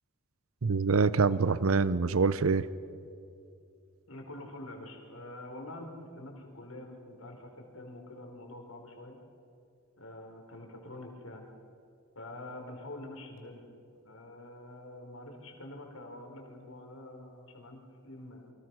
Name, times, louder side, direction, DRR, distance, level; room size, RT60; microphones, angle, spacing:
voice 1, 0.6-2.7, right 4 dB, 80° right, 16 dB, 0.7 m, -25 dB
voice 2, 4.1-9.2 10.0-11.5 12.1-13.6 14.0-18.5, left 1 dB, 85° left, 2 dB, 4.5 m, -46 dB
29.0 x 24.5 x 6.2 m, 2.5 s
head